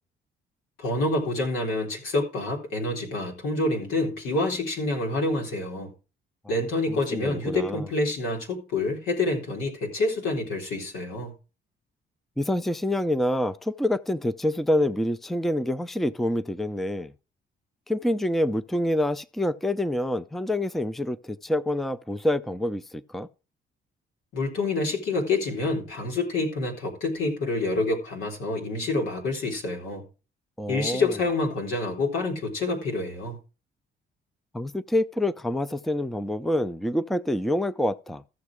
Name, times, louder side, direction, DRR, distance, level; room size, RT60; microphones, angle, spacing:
voice 1, 0.8-5.9 6.5-11.3 24.3-30.0 30.7-33.4, left 2 dB, 85° left, 3.9 m, -27 dB
voice 2, 6.9-7.9 12.4-17.1 17.9-23.3 30.6-31.1 34.5-38.2, left 1 dB, ahead, 0.5 m, -27 dB
14.5 x 6.6 x 4.7 m
cardioid pair, 90°, 20 cm